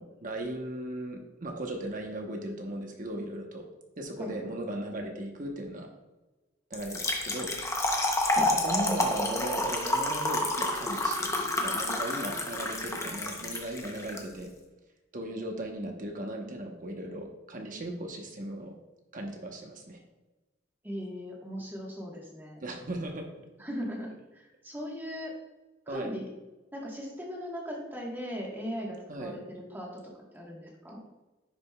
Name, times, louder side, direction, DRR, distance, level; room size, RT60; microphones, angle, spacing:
voice 1, 0.0-3.6 4.0-5.9 6.7-7.5 7.9-8.0 8.4-14.5 15.1-18.7 19.1-20.0 22.6-23.2 25.9-26.1 29.1-29.4, right 1 dB, 45° right, 2 dB, 1.0 m, -37 dB
Trickle dribble / Fill (with liquid), 6.7-14.2, left 1 dB, 15° left, 0.7 m, -29 dB
voice 2, 20.8-22.6 23.6-25.3 25.9-26.3 26.7-31.0, equal, 10° right, -2 dB, 1.4 m, -38 dB
10.0 x 5.1 x 2.3 m, 1.1 s
head